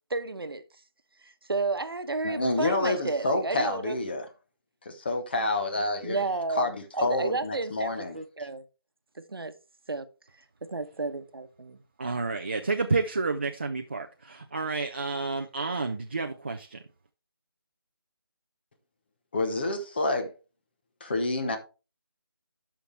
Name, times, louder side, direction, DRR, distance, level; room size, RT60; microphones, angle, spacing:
voice 1, 0.1-0.6 1.2-4.0 6.0-8.6 9.2-9.5 9.9-10.1 10.6-11.8, right 3 dB, 70° right, 1.1 m, -32 dB
voice 2, 2.2-4.3 4.8-6.2 6.5-8.2 19.3-20.3 21.0-21.6, left 2 dB, 25° left, 0.9 m, -28 dB
voice 3, 12.0-16.8, right 3 dB, 30° right, 0.5 m, -30 dB
11.5 x 5.8 x 3.3 m
figure-of-eight pair, 170°, 13 cm